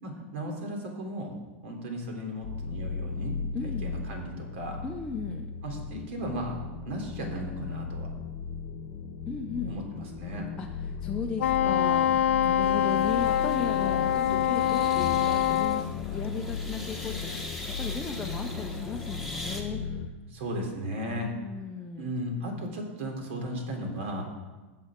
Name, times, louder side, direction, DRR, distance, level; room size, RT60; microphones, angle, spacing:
voice 1, 0.0-1.3 1.6-3.4 3.6-4.8 5.6-6.5 6.8-8.1 9.7-10.5 20.3-21.3 22.0-24.2, equal, 65° right, 1 dB, 3.3 m, -35 dB
sound 1, 2.4-20.1, left 6 dB, 50° left, 1.0 m, -36 dB
voice 2, 3.5-4.0 4.8-5.5 9.3-9.8 10.6-19.8 21.1-22.1, left 5 dB, 10° left, 0 dB, 0.6 m, -36 dB
Wind instrument woodwind instrument, 11.4-15.9, left 11 dB, 85° left, 0.5 m, -25 dB
sound 2, 12.6-19.6, left 1 dB, 5° right, 1.4 m, -42 dB
18.5 x 7.6 x 3.7 m, 1.2 s
supercardioid pair, 155°, 7 cm